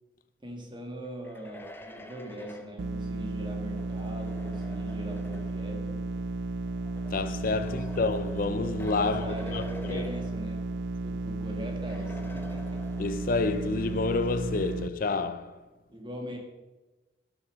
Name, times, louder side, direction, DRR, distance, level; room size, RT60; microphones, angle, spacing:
voice 1, 0.4-6.1 7.6-7.8 9.0-12.9 15.9-16.4, equal, 25° right, 1.8 m, -41 dB
sound 1, 1.0-5.7 6.7-10.8 11.2-11.3 11.9-13.4, left 1 dB, 15° left, 0.8 m, -48 dB
sound 2, 2.8-14.9, right 3 dB, 90° right, 0.4 m, -34 dB
voice 2, 7.1-10.1 13.0-15.6, left 3 dB, 55° left, 0.5 m, -29 dB
11.0 x 6.3 x 6.1 m
head